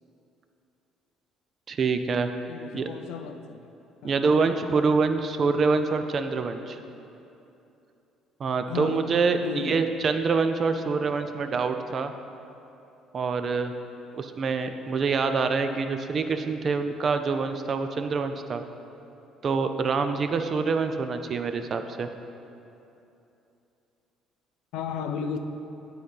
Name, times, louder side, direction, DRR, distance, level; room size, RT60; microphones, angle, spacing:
voice 1, 1.7-2.3 2.7-2.9 4.0-6.8 8.4-12.1 13.1-13.7 14.2-18.6 19.4-22.1, right 4 dB, 40° right, 8 dB, 0.4 m, -26 dB
voice 2, 2.5-3.6 4.0-4.2 8.7-9.0 9.4-9.9 24.7-25.4, left 6 dB, 80° left, 7 dB, 0.5 m, -34 dB
9.1 x 3.8 x 5.5 m, 2.8 s
cardioid pair, 115°, 0 cm